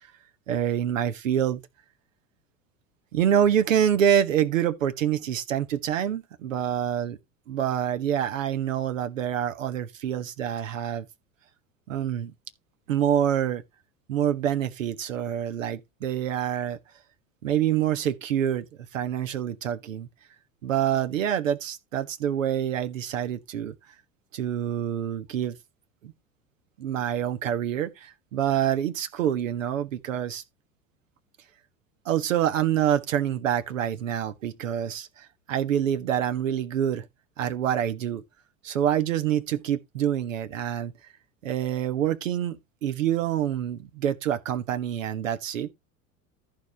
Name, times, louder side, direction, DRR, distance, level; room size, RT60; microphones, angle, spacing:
voice 1, 0.5-1.6 3.1-7.2 7.5-11.1 11.9-12.3 12.9-13.6 14.1-16.8 17.4-18.7 18.9-20.1 20.6-23.7 24.3-25.6 26.0-26.1 26.8-30.4 32.0-37.1 37.4-38.2 38.6-40.9 41.4-45.7, right 10 dB, 70° right, 1.6 m, -26 dB
14.0 x 4.9 x 4.1 m
figure-of-eight pair, 75°, 40 cm